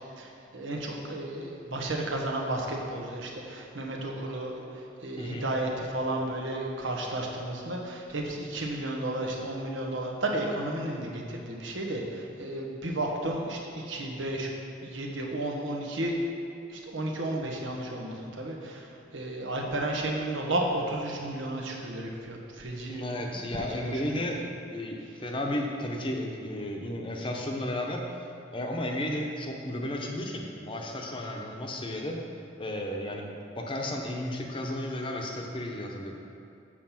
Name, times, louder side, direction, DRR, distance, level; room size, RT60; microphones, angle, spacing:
voice 1, 0.2-14.5 14.8-16.2 16.7-18.9 19.1-23.0 23.3-24.2, right 1 dB, 90° right, -1 dB, 1.3 m, -33 dB
voice 2, 22.9-24.4 24.7-28.3 28.5-32.2 32.6-33.3 33.5-36.2, left 1 dB, 25° left, 1 dB, 0.8 m, -33 dB
7.5 x 6.5 x 5.9 m, 2.7 s
head